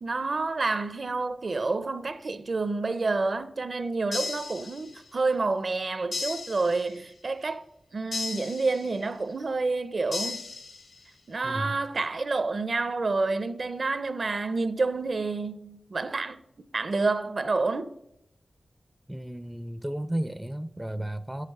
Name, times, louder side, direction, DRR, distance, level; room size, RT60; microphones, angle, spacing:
voice 1, 0.0-7.6 7.9-10.4 11.3-16.4 16.7-17.9, right 3 dB, 55° right, 0.6 m, -28 dB
sound 1, 4.1-5.2 6.1-7.2 8.1-9.2 10.1-11.2, left 3 dB, 80° left, 1.5 m, -36 dB
voice 2, 11.4-11.8 19.1-21.5, right 1 dB, 10° right, 0.4 m, -33 dB
7.7 x 6.6 x 6.5 m
wide cardioid pair, 90°, 0 cm